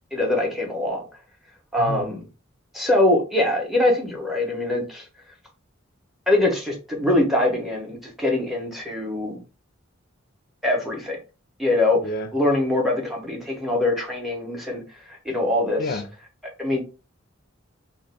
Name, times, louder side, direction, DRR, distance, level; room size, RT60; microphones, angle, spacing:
voice 1, 0.1-1.0 1.7-2.3 2.7-5.0 6.3-9.4 10.6-11.2 11.6-12.0 12.3-14.8 15.1-16.0 16.6-16.8, left 1 dB, ahead, 0.6 m, -23 dB
voice 2, 1.8-2.2 12.0-12.3 15.8-16.0, left 2 dB, 45° left, 0.4 m, -29 dB
2.4 x 2.0 x 3.1 m
head